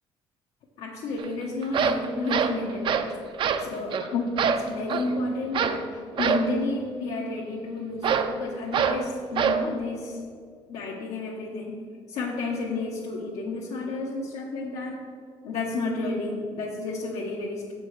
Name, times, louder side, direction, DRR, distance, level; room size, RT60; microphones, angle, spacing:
voice 1, 0.8-3.1 3.6-10.2 10.7-15.0 15.4-17.7, left 2 dB, 80° left, -3 dB, 1.0 m, -31 dB
sound 1, 1.2-1.3 1.6-3.1 3.4-3.7 3.9-4.1 4.4-5.1 5.5-5.8 6.2-6.5 8.0-8.3 8.7-9.0 9.4-9.6, right 7 dB, 50° right, 0.5 m, -25 dB
7.0 x 5.1 x 6.5 m, 2.1 s
cardioid pair, 120°, 11 cm